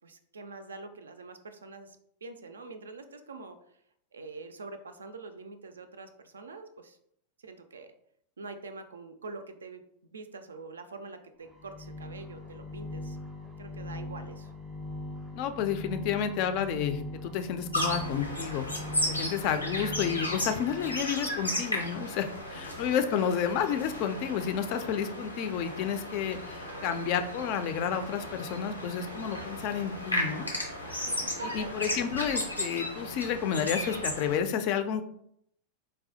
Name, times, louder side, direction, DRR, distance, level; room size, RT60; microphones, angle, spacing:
voice 1, 0.0-3.6 4.1-7.0 7.4-7.9 8.4-9.8 10.1-13.2 13.6-14.5 22.5-22.6 31.1-32.0, right 3 dB, 70° right, 9 dB, 0.3 m, -45 dB
sound 1, 11.5-21.1, left 2 dB, 10° right, 0.5 m, -41 dB
voice 2, 15.3-18.7 19.1-30.5 30.9-31.0 31.4-35.0, left 8 dB, 45° left, 8 dB, 0.3 m, -31 dB
sound 2, 17.7-34.4, left 1 dB, 85° left, 0.6 m, -35 dB
4.1 x 2.1 x 2.7 m, 0.71 s
figure-of-eight pair, 90°, 0 cm